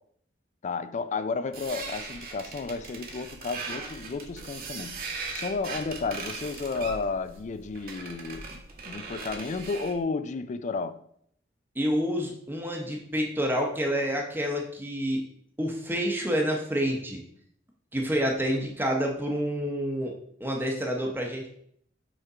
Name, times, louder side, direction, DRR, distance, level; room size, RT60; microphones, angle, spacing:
voice 1, 0.6-5.0 5.3-11.0, left 4 dB, 40° left, 0.4 m, -32 dB
sound 1, 1.5-10.0, right 4 dB, 55° right, 1.0 m, -39 dB
voice 2, 11.8-15.2 15.6-17.2 17.9-20.1 20.4-21.5, equal, 10° right, 0.8 m, -28 dB
5.3 x 3.6 x 4.9 m
head